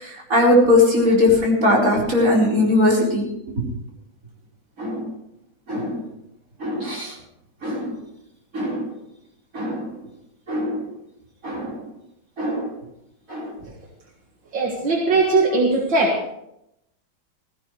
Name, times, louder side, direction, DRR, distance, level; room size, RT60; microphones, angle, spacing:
voice 1, 0.0-3.3 3.6-3.7 4.8-5.1 5.7-6.0 6.6-7.1 7.6-7.9 8.5-8.9 9.5-9.8 10.5-10.9 11.4-11.8 12.4-12.7 13.3-13.5, left 1 dB, 45° right, -4 dB, 4.9 m, -20 dB
voice 2, 14.5-16.3, right 3 dB, 75° right, -1 dB, 2.5 m, -19 dB
16.5 x 16.0 x 3.3 m, 0.80 s
omnidirectional pair, 2.1 m